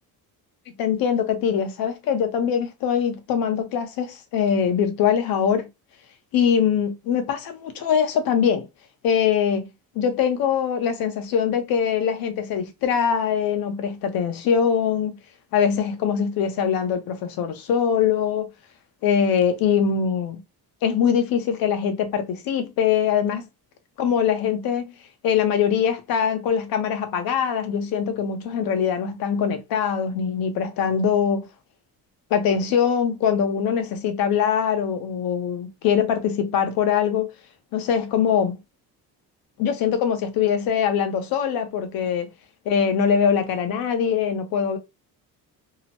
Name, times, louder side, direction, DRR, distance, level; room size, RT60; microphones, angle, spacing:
voice 1, 0.8-5.7 6.3-8.7 9.0-9.7 9.9-15.2 15.5-18.5 19.0-20.4 20.8-23.4 24.0-24.9 25.2-31.5 32.3-37.3 37.7-38.6 39.6-42.3 42.7-44.8, left 7 dB, 70° left, 0.8 m, -22 dB
2.9 x 2.1 x 2.8 m
cardioid pair, 160°, 37 cm